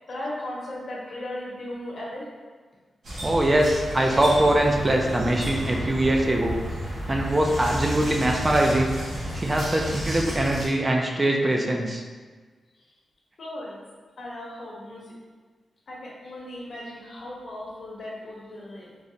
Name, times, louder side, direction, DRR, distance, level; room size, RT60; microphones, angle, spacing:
voice 1, 0.1-2.3 12.8-12.9 13.4-13.8 14.2-15.2 15.9-18.9, left 1 dB, 55° left, -5 dB, 0.9 m, -37 dB
sound 1, 3.0-10.6, equal, 75° right, 1.1 m, -32 dB
voice 2, 3.2-6.6 7.1-8.9 9.3-12.0, right 1 dB, 25° right, 1 dB, 0.3 m, -22 dB
3.8 x 2.1 x 2.7 m, 1.4 s
wide cardioid pair, 115°, 0 cm